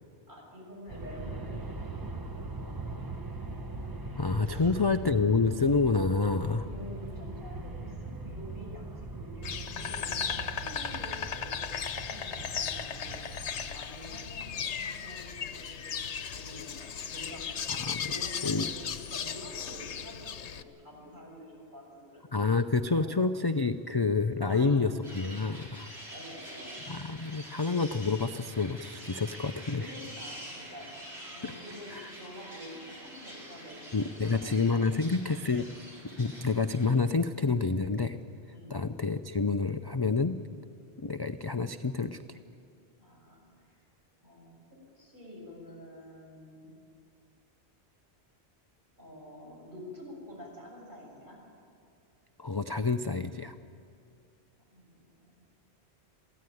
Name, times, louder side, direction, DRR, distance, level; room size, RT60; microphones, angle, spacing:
voice 1, 0.3-1.8 4.5-4.8 6.7-11.7 12.0-22.5 23.0-23.1 24.4-24.9 26.1-26.8 29.1-29.2 29.7-30.9 31.3-35.0 38.5-38.7 43.0-43.8 44.2-44.6 44.9-46.8 49.0-51.4 54.7-55.1, equal, 50° right, -2 dB, 7.1 m, -48 dB
Aircraft, 0.9-13.7, right 3 dB, 20° right, 0.9 m, -41 dB
voice 2, 4.2-6.7 17.8-18.0 18.4-18.7 22.3-25.9 26.9-29.9 31.4-31.5 31.9-32.1 33.9-35.7 36.2-38.2 38.7-40.4 41.0-42.4 52.4-53.5, left 4 dB, 30° left, 8 dB, 0.5 m, -28 dB
Insect, 9.4-20.6, left 7 dB, 85° left, 1.2 m, -36 dB
sound 1, 25.0-36.9, equal, 70° right, 5.6 m, -46 dB
23.0 x 16.0 x 9.3 m, 2.5 s
omnidirectional pair, 1.1 m